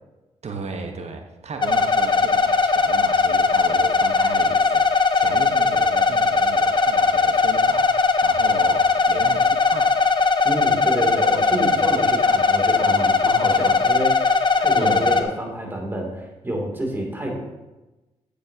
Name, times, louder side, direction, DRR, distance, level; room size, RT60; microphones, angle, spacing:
voice 1, 0.4-9.9 11.5-11.9 14.7-15.1, right 4 dB, 50° right, 4 dB, 1.2 m, -34 dB
sound 1, 1.6-15.2, left 4 dB, 35° left, 0.8 m, -19 dB
voice 2, 10.4-17.4, right 1 dB, 15° right, 0 dB, 2.8 m, -28 dB
8.5 x 8.0 x 2.9 m, 1.1 s
supercardioid pair, 50°, 14 cm